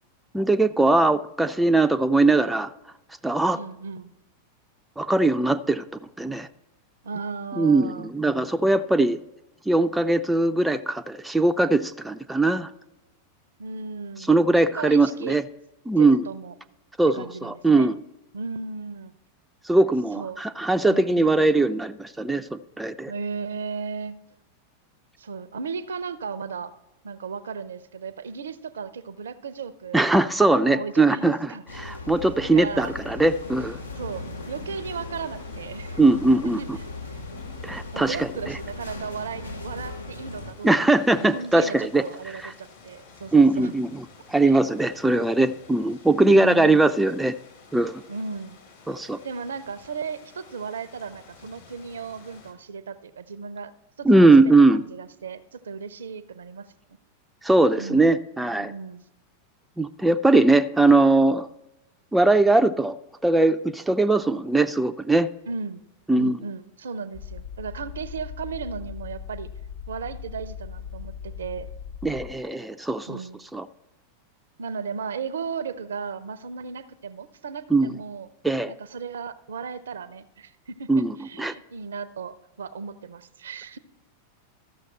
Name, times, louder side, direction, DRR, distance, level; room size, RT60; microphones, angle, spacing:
voice 1, 0.3-2.7 3.2-3.6 5.0-5.8 6.2-6.5 7.6-9.2 9.7-12.7 14.3-15.4 15.9-16.2 17.0-18.0 19.6-23.1 29.9-33.8 36.0-36.8 37.6-38.6 40.6-42.0 42.4-42.5 43.3-47.3 47.7-48.0 48.9-49.2 54.0-54.8 57.4-58.7 59.8-61.5 62.1-63.0 63.2-65.3 66.1-66.4 72.0-73.2 73.5-73.7 77.7-78.0 78.4-78.7 80.9-81.5, right 2 dB, 5° right, 8 dB, 0.4 m, -20 dB
voice 2, 3.5-4.1 7.0-8.1 13.6-14.3 14.7-15.4 16.0-16.5 17.2-17.9 18.3-19.1 20.1-20.4 20.9-21.3 23.1-24.2 25.2-26.7 27.0-31.6 32.5-32.9 34.0-36.0 36.6-36.7 37.9-43.7 44.4-44.6 46.2-46.9 48.1-48.6 49.2-53.7 54.0-56.7 57.8-58.2 58.6-59.0 65.5-65.8 66.2-69.5 69.9-71.7 73.1-73.4 74.6-78.3 78.7-80.9 81.2-83.8, right 5 dB, 65° right, 14 dB, 0.5 m, -35 dB
sound 1, 31.7-40.5, left 2 dB, 80° left, 0.8 m, -38 dB
sound 2, 33.2-52.5, left 5 dB, 60° left, 2.5 m, -50 dB
sound 3, 67.1-72.5, left 7 dB, 45° left, 1.0 m, -39 dB
13.5 x 6.3 x 4.3 m, 0.91 s
figure-of-eight pair, 90°, 0 cm